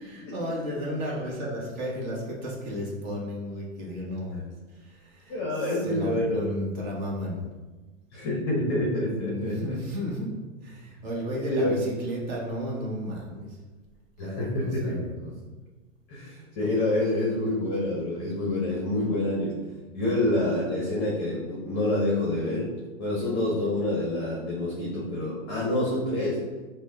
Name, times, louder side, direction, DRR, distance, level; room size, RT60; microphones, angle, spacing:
voice 1, 0.0-7.4 9.1-10.3 10.6-13.6 14.2-15.4 20.0-20.2, equal, 35° right, -3 dB, 1.1 m, -34 dB
voice 2, 5.3-6.5 8.1-9.8 11.5-11.9 14.2-15.3 16.1-19.5 19.9-22.7 23.0-26.4, left 1 dB, 25° left, -4 dB, 0.7 m, -27 dB
5.8 x 2.2 x 3.6 m, 1.2 s
hypercardioid pair, 165°, 40 cm